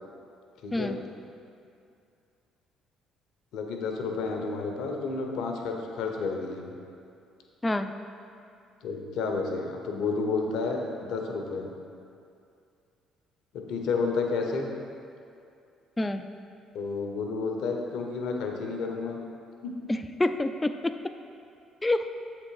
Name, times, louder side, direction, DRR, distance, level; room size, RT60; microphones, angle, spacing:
voice 1, 0.6-1.0 3.5-6.7 8.8-11.7 13.5-14.7 16.7-19.2 19.6-19.9, left 4 dB, 70° left, 2 dB, 0.7 m, -31 dB
voice 2, 7.6-7.9 16.0-16.2 19.9-20.9 21.8-22.1, left 2 dB, 20° left, 9 dB, 0.4 m, -27 dB
7.3 x 3.8 x 4.7 m, 2.5 s
hypercardioid pair, 60°, 0 cm